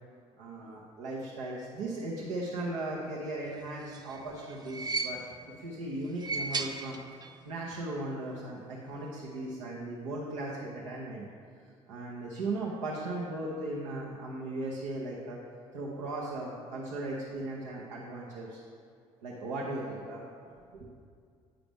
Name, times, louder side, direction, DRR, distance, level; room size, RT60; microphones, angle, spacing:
voice 1, 0.4-5.2 5.6-7.0 7.4-11.3 11.9-15.4 15.7-18.6 19.2-20.2 20.8-20.9, right 2 dB, 80° right, -5 dB, 0.9 m, -37 dB
sound 1, 3.6-5.6 6.0-7.5 7.7-7.8 8.9-9.0, right 4 dB, 25° right, 0.5 m, -36 dB
9.0 x 4.9 x 3.5 m, 2.2 s
hypercardioid pair, 55°, 15 cm